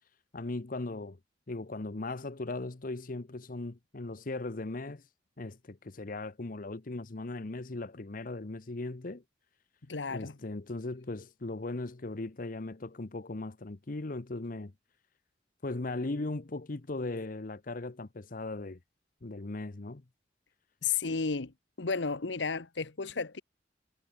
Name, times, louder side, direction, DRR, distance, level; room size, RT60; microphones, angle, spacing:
voice 1, 0.3-1.2 1.5-5.0 5.4-9.2 10.1-14.7 15.6-18.8 19.2-20.0, left 2 dB, 50° left, 0.9 m, -38 dB
voice 2, 9.9-10.4 20.8-21.5 21.8-23.4, left 5 dB, 85° left, 1.1 m, -32 dB
head